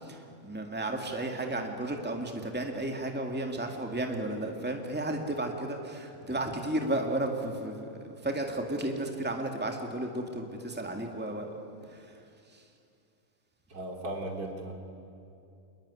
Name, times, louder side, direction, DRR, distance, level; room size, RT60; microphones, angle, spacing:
voice 1, 0.0-11.5 11.8-12.6, right 1 dB, 5° right, 3 dB, 2.1 m, -33 dB
voice 2, 13.7-14.7, right 1 dB, 70° right, 2 dB, 3.8 m, -36 dB
27.0 x 21.5 x 9.8 m, 2.6 s
omnidirectional pair, 1.7 m